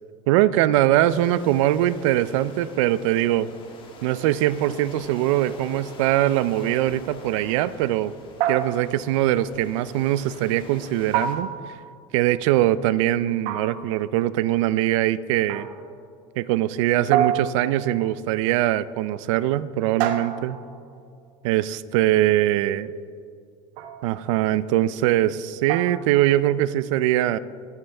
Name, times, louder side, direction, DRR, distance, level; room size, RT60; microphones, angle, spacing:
voice 1, 0.3-3.5 4.0-8.1 8.5-11.5 12.1-15.7 16.4-20.6 21.4-22.9 24.0-27.4, right 14 dB, 85° right, 17 dB, 0.5 m, -22 dB
sound 1, 1.1-11.4, left 3 dB, 30° left, 1.8 m, -45 dB
sound 2, 8.4-9.2 11.1-12.0 13.5-14.1 15.5-15.9 17.1-18.1 20.0-20.8 23.8-24.1 25.7-26.2, right 9 dB, 60° right, 0.9 m, -27 dB
22.5 x 9.2 x 3.4 m, 2.3 s
cardioid pair, 145°, 16 cm